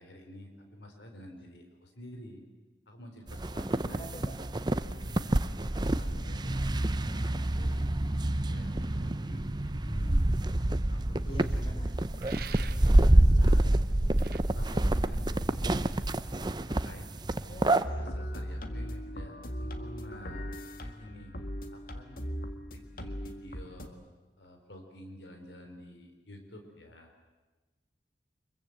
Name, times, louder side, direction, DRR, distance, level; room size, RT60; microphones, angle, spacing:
voice 1, 0.0-2.4 2.9-4.1 5.0-7.8 8.3-10.3 10.9-11.5 12.5-13.6 14.5-15.9 16.7-17.1 17.6-20.5 20.8-21.3 21.7-22.2 22.7-24.0 24.4-27.1, left 1 dB, 80° left, 4 dB, 4.0 m, -48 dB
sound 1, 3.3-17.8, right 1 dB, 25° right, 0.7 m, -27 dB
voice 2, 3.5-4.4 11.3-12.5 17.5-18.1, equal, 30° left, 4 dB, 4.2 m, -47 dB
sound 2, 12.2-13.0 14.2-14.4, right 8 dB, 55° right, 1.1 m, -44 dB
sound 3, 17.8-23.9, equal, 50° left, 2.0 m, -38 dB
25.0 x 23.0 x 7.9 m, 1.2 s
head